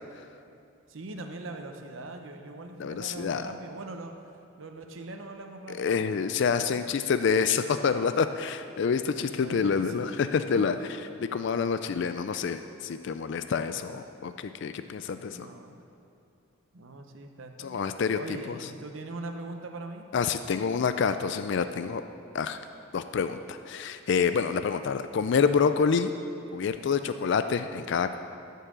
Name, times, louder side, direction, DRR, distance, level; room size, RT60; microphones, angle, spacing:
voice 1, 0.9-4.2 4.6-6.7 9.4-10.2 10.5-11.0 15.3-15.8 16.7-17.9 18.1-20.1, right 2 dB, 70° right, 5 dB, 0.8 m, -42 dB
voice 2, 2.8-3.5 5.8-15.5 17.6-18.2 18.5-18.6 20.1-22.0 22.3-22.6 22.9-26.1 26.5-28.2, left 6 dB, 60° left, 10 dB, 0.4 m, -27 dB
13.5 x 5.6 x 7.4 m, 2.6 s
head